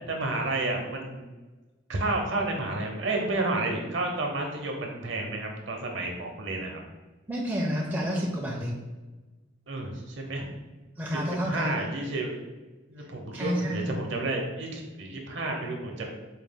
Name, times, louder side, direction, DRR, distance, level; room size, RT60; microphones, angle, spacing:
voice 1, 0.1-1.3 1.9-6.8 9.7-10.5 11.4-12.4 12.9-16.0, right 2 dB, 60° right, 1 dB, 0.7 m, -31 dB
voice 2, 7.3-8.8 11.0-11.8 13.3-13.9, equal, 10° right, -3 dB, 0.4 m, -29 dB
4.2 x 2.3 x 3.5 m, 1.2 s
head